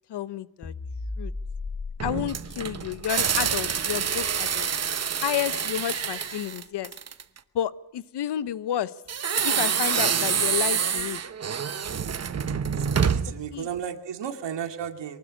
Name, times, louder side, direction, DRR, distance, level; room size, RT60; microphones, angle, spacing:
voice 1, 0.1-0.7 1.2-1.3 2.0-4.7 5.2-6.9 7.5-8.9 9.4-11.2 13.5-13.7, left 11 dB, 70° left, 16 dB, 0.9 m, -30 dB
sound 1, 0.6-5.1, left 3 dB, 15° left, 0.9 m, -38 dB
sound 2, 2.0-7.4 9.1-13.4, right 7 dB, 35° right, 1.0 m, -27 dB
voice 2, 13.0-15.2, right 8 dB, 90° right, 6 dB, 2.4 m, -33 dB
23.5 x 19.5 x 8.9 m, 0.83 s
wide cardioid pair, 160°, 41 cm